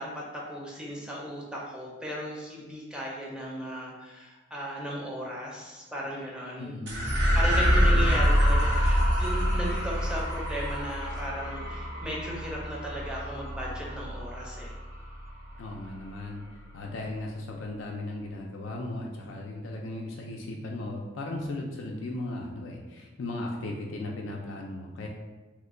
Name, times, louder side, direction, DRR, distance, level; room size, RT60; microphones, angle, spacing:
voice 1, 0.0-6.8 7.3-14.8, equal, 5° right, -4 dB, 0.5 m, -36 dB
voice 2, 6.6-7.2 7.6-8.1 15.6-16.4 16.7-25.1, left 2 dB, 70° left, 0 dB, 0.4 m, -36 dB
sound 1, 6.9-15.5, equal, 60° right, 0.7 m, -26 dB
3.0 x 2.2 x 3.6 m, 1.2 s
head